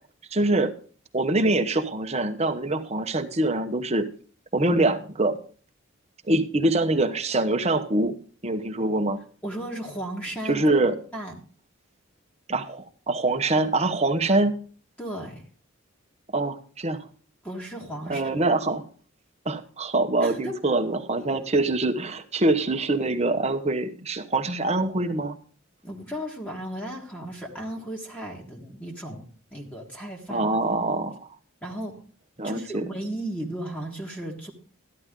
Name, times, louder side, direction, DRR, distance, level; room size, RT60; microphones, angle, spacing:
voice 1, 0.3-0.7 1.1-4.1 4.5-5.4 6.3-9.2 10.4-11.0 12.5-14.5 16.3-17.1 18.1-18.8 19.4-25.4 30.3-31.2 32.4-32.8, right 2 dB, 30° right, 7 dB, 1.0 m, -24 dB
voice 2, 9.4-10.6 11.1-11.3 15.0-15.5 17.4-18.4 20.2-20.5 25.8-29.3 29.5-30.5 31.6-31.9 32.4-34.5, right 1 dB, 5° left, 0 dB, 1.6 m, -35 dB
13.5 x 11.0 x 3.7 m, 0.41 s
head